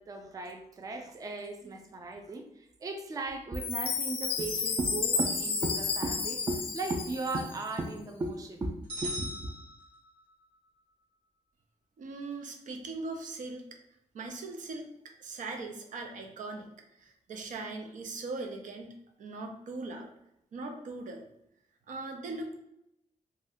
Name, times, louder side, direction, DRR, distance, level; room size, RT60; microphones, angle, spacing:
voice 1, 0.0-8.7 9.0-9.5, right 2 dB, 30° right, 4 dB, 0.3 m, -36 dB
Chime, 3.5-7.8, left 5 dB, 45° left, 0.4 m, -32 dB
sound 1, 8.9-10.5, equal, 50° right, 1.0 m, -40 dB
voice 2, 12.0-13.6 14.1-14.9 15.2-16.7 17.0-18.9 19.2-20.1 20.5-21.2 21.9-22.5, right 3 dB, 80° right, 3 dB, 0.5 m, -40 dB
2.6 x 2.2 x 3.4 m, 0.80 s
wide cardioid pair, 150°, 13 cm